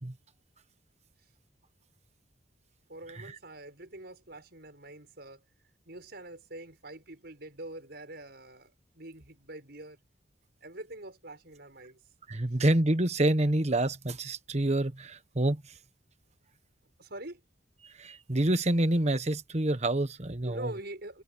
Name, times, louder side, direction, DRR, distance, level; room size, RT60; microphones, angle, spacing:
voice 1, 2.9-5.4 5.9-10.0 10.6-12.0 17.0-17.4 20.4-21.2, right 1 dB, 60° right, 7.1 m, -44 dB
voice 2, 12.3-15.6 17.8-20.7, right 1 dB, 35° right, 1.3 m, -27 dB
head